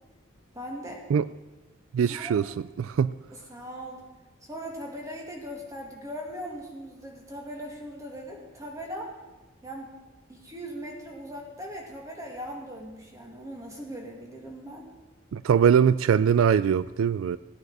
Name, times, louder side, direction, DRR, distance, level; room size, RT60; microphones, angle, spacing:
voice 1, 0.5-1.0 2.0-2.3 3.3-4.0 4.4-9.1 9.6-9.9 10.3-14.9, equal, 15° right, 2.2 m, -39 dB
voice 2, 1.9-2.5 2.8-3.1 15.3-17.4, right 7 dB, 85° right, 0.3 m, -22 dB
16.0 x 9.1 x 4.8 m
head